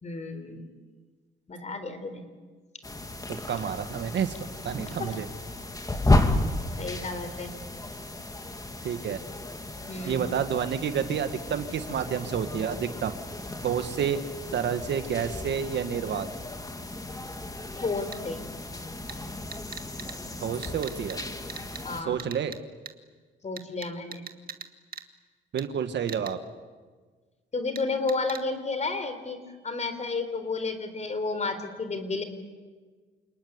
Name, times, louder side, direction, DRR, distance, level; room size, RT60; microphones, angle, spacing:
voice 1, 0.0-0.7 1.5-2.2 4.8-5.1 6.2-6.5 6.8-7.5 9.8-10.3 17.8-18.4 21.8-22.2 23.4-24.3 27.5-32.2, left 3 dB, 35° left, 9 dB, 4.0 m, -32 dB
sound 1, 2.8-22.0, left 2 dB, 20° left, 2.3 m, -33 dB
voice 2, 3.3-5.3 8.8-9.2 10.0-13.1 13.6-14.2 14.5-16.3 20.4-21.2 22.0-22.6 25.5-26.4, right 8 dB, 65° right, 9 dB, 1.7 m, -29 dB
sound 2, 18.1-18.2 19.1-19.2 19.5-20.1 20.6-21.2 21.5-21.8 22.2-22.6 22.9-23.0 23.6-24.7 24.9-25.0 25.6-25.7 26.1-26.3 27.8-27.9 28.1-28.4, right 7 dB, 45° right, 1.7 m, -39 dB
28.5 x 19.5 x 9.7 m, 1.4 s
cardioid pair, 90°, 20 cm